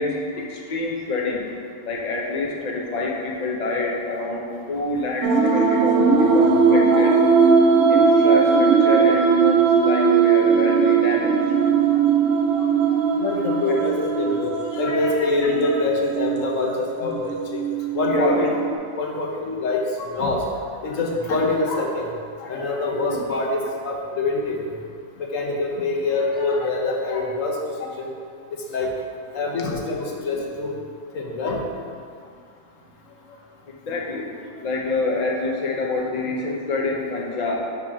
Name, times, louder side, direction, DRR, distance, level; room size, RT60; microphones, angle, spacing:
voice 1, 0.0-1.4 1.8-7.2 7.9-11.4 13.6-13.8 15.4-15.7 18.1-18.5 22.9-23.2 33.7-34.3 34.6-37.6, left 2 dB, 35° left, -1 dB, 0.9 m, -27 dB
sound 1, 5.2-18.7, right 5 dB, 60° right, 0.9 m, -19 dB
voice 2, 7.7-8.1 12.5-12.6 12.9-17.6 17.9-18.5 19.0-22.1 22.4-24.7 25.2-28.1 28.5-28.9 29.3-30.7 31.1-31.6 33.9-34.0, left 2 dB, 90° left, 0 dB, 1.3 m, -25 dB
7.2 x 3.6 x 5.7 m, 2.2 s
omnidirectional pair, 1.3 m